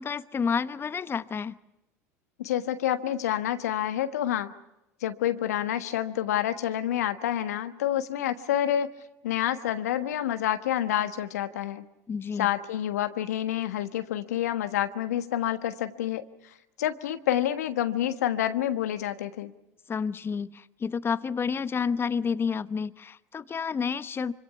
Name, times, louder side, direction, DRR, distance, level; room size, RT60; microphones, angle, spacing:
voice 1, 0.0-1.6 12.1-12.5 19.9-24.3, left 6 dB, 25° left, 15 dB, 1.0 m, -30 dB
voice 2, 2.4-4.5 5.0-8.9 9.2-11.8 12.4-16.2 16.8-19.5, left 11 dB, 75° left, 10 dB, 1.4 m, -28 dB
26.0 x 25.5 x 6.0 m, 0.91 s
hypercardioid pair, 75°, 9 cm